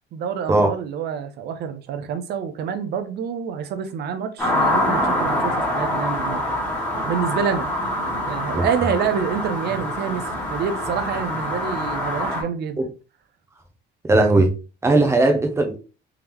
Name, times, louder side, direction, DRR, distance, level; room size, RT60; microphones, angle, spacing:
voice 1, 0.1-6.4 7.0-7.7 8.2-10.2 10.5-12.9 15.2-15.4, right 7 dB, 60° right, 0.7 m, -27 dB
sound 1, 4.4-12.4, left 1 dB, 10° left, 1.5 m, -25 dB
voice 2, 14.1-14.5 14.8-15.8, right 2 dB, 15° right, 0.8 m, -17 dB
3.6 x 3.6 x 3.0 m
cardioid pair, 155°, 19 cm